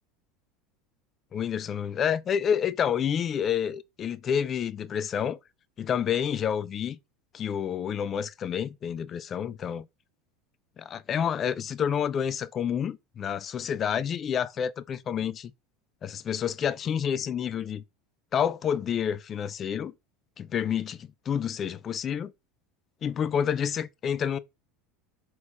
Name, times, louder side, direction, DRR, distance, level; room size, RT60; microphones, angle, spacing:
voice 1, 1.3-5.4 5.8-7.0 7.3-9.9 10.8-15.5 16.0-17.8 18.3-19.9 20.4-22.3 23.0-24.4, left 8 dB, 40° left, 0.3 m, -29 dB
4.3 x 3.0 x 2.3 m
hypercardioid pair, 85°, 0 cm